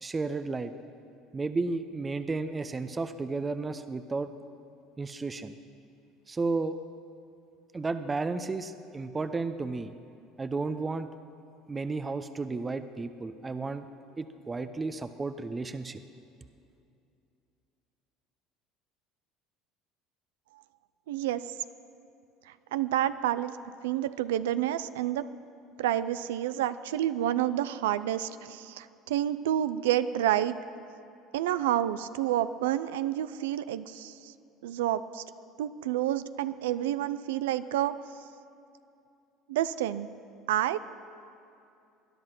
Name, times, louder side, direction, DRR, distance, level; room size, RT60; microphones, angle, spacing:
voice 1, 0.0-0.7 1.3-4.3 5.0-5.5 6.3-6.8 7.7-9.9 10.4-11.1 11.7-13.9 14.2-16.0, right 3 dB, 25° right, 10 dB, 0.8 m, -33 dB
voice 2, 21.1-21.5 22.5-23.6 23.8-25.3 25.8-30.6 31.3-34.3 34.6-35.2 35.6-37.9 39.5-40.1 40.5-40.8, right 12 dB, 80° right, 13 dB, 0.4 m, -29 dB
20.0 x 11.0 x 6.0 m, 2.6 s
hypercardioid pair, 75°, 0 cm